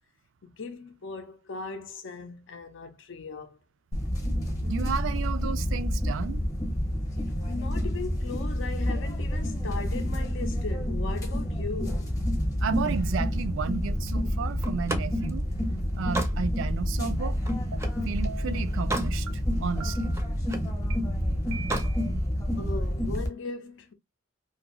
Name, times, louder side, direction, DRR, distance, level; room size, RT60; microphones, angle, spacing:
voice 1, 0.4-3.6 7.5-12.1 22.6-23.9, left 4 dB, 70° left, 0.5 m, -38 dB
sound 1, 3.9-23.3, equal, 20° left, 0.8 m, -29 dB
voice 2, 4.7-6.4 12.6-15.5 16.0-17.4 18.1-19.3 19.6-20.1, right 6 dB, 70° right, 0.3 m, -32 dB
Slam, 14.6-18.1 18.5-19.2 19.6-20.7 21.5-22.0, right 1 dB, 15° right, 0.5 m, -35 dB
sound 2, 17.7-17.8 18.2-18.6 19.3-19.4 19.8-20.3 20.9-21.0 21.5-22.1, right 5 dB, 90° right, 0.7 m, -42 dB
2.6 x 2.4 x 2.9 m
head